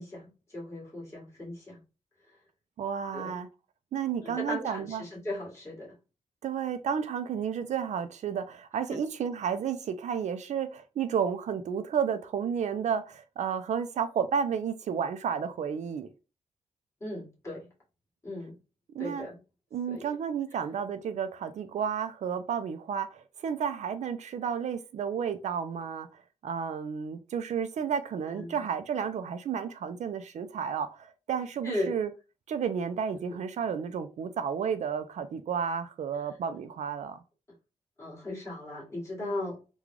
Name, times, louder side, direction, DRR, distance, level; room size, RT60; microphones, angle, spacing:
voice 1, 0.0-1.8 3.1-3.4 4.2-6.0 8.9-9.0 17.0-17.7 18.2-18.5 19.0-19.4 19.9-20.1 28.3-28.5 31.6-31.9 33.3-33.4 38.0-39.6, left 1 dB, 25° left, 1.9 m, -37 dB
voice 2, 2.8-3.5 3.9-5.0 6.4-16.1 18.9-19.3 19.7-26.1 26.4-32.1 32.5-37.2 39.2-39.3, right 7 dB, 70° right, 0.4 m, -32 dB
3.7 x 2.3 x 3.1 m
wide cardioid pair, 135°, 12 cm